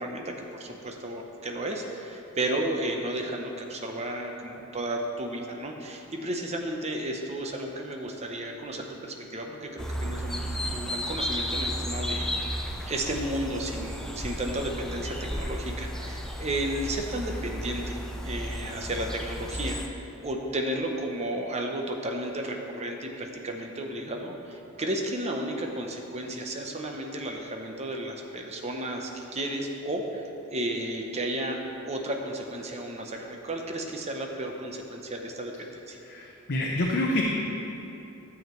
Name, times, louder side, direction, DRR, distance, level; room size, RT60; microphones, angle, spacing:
voice 1, 0.0-12.3 12.8-31.6 31.9-36.0, right 1 dB, 30° right, 2 dB, 0.8 m, -33 dB
sound 1, 9.8-19.9, equal, ahead, 0.5 m, -33 dB
voice 2, 36.0-37.2, left 1 dB, 50° left, -2 dB, 0.7 m, -27 dB
12.0 x 7.2 x 3.1 m, 3.0 s
head